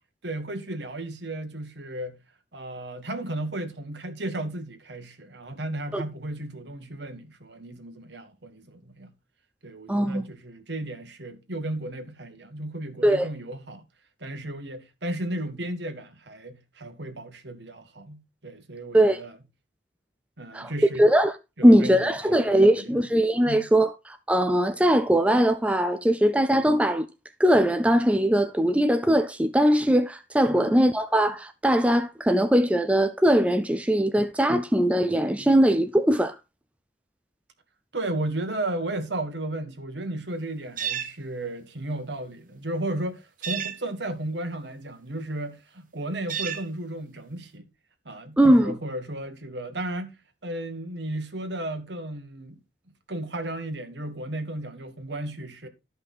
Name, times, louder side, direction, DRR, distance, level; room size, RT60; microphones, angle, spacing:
voice 1, 0.2-2.2 2.5-9.1 9.6-13.8 14.2-19.4 20.4-21.1 21.6-23.0 23.5-23.7 30.5-30.8 37.9-47.7 48.0-52.6 53.1-55.7, right 1 dB, 70° right, 1.6 m, -34 dB
voice 2, 9.9-10.2 13.0-13.3 18.9-19.2 20.5-20.7 21.0-21.3 21.6-27.1 27.4-36.3 48.4-48.7, right 1 dB, 5° right, 0.5 m, -20 dB
sound 1, 40.8-41.1 43.4-43.8 46.3-46.7, right 8 dB, 45° right, 1.2 m, -30 dB
12.5 x 5.5 x 4.1 m
head